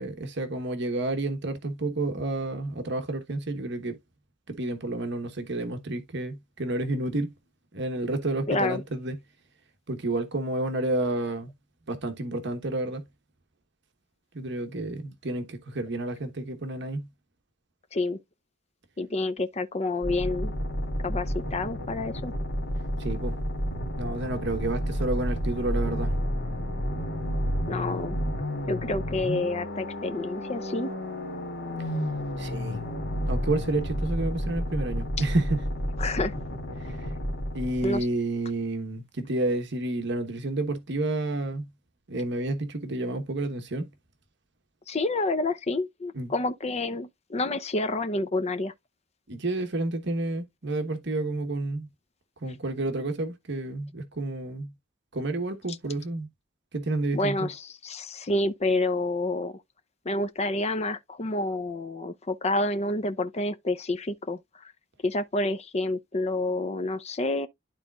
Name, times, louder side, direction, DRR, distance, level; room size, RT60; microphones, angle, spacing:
voice 1, 0.0-4.0 4.5-7.3 7.7-9.2 9.9-11.5 11.9-13.0 14.3-17.1 23.0-23.4 23.9-26.1 32.4-32.8 33.3-35.6 36.8-37.1 37.5-41.7 42.1-43.9 46.1-46.3 49.3-51.9 52.4-54.7 55.1-56.3 56.7-57.5, right 2 dB, 65° right, 1.2 m, -30 dB
voice 2, 8.5-8.8 17.9-18.2 19.0-20.5 21.0-22.3 27.7-28.2 28.6-30.9 36.0-36.3 37.8-38.1 44.9-48.7 57.1-59.5 60.1-64.4 65.0-67.5, left 2 dB, 35° left, 0.6 m, -28 dB
sound 1, 20.0-38.1, equal, 60° left, 1.9 m, -31 dB
12.0 x 4.1 x 2.3 m
head